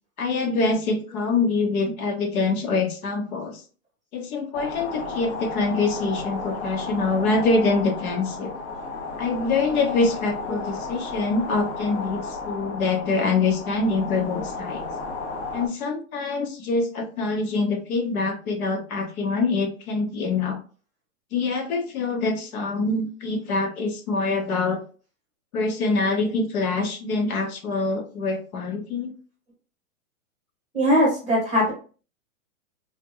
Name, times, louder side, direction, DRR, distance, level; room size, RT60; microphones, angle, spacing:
voice 1, 0.2-3.6 4.1-8.5 9.2-14.8 15.5-20.6 21.3-24.8 25.5-29.2, left 3 dB, 80° left, 4 dB, 1.0 m, -25 dB
sound 1, 4.5-15.7, left 3 dB, 50° left, 0.6 m, -33 dB
voice 2, 30.7-31.7, equal, ahead, -9 dB, 0.5 m, -20 dB
3.4 x 2.1 x 2.2 m, 0.37 s
supercardioid pair, 175°, 43 cm